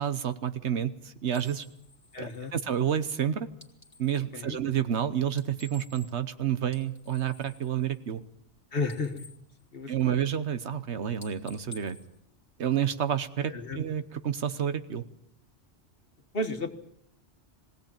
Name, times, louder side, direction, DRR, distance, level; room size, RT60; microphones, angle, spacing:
voice 1, 0.0-1.7 2.2-3.5 4.0-8.2 9.9-12.0 12.6-15.0, right 9 dB, 70° right, 12 dB, 1.3 m, -29 dB
sound 1, 1.3-4.3 5.2-6.4 6.6-8.5 8.8-10.3 10.7-10.9 11.2-13.0, left 2 dB, 15° left, 2.5 m, -53 dB
voice 2, 2.1-2.5 4.3-4.6 8.7-9.2 9.7-10.1 13.5-13.8 16.3-16.7, left 2 dB, 55° left, 6 dB, 1.8 m, -33 dB
21.5 x 16.5 x 8.8 m, 0.74 s
omnidirectional pair, 1.2 m